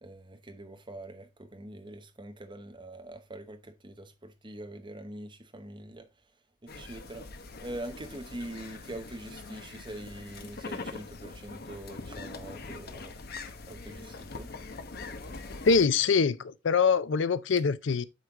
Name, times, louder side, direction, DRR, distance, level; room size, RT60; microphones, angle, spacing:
voice 1, 0.0-6.1 6.6-7.3 7.6-13.2 13.7-14.5, right 1 dB, 25° right, 1.0 m, -43 dB
sound 1, 6.7-15.9, left 3 dB, 55° left, 0.9 m, -43 dB
voice 2, 15.6-18.1, left 5 dB, 70° left, 0.5 m, -24 dB
8.3 x 4.5 x 3.6 m
head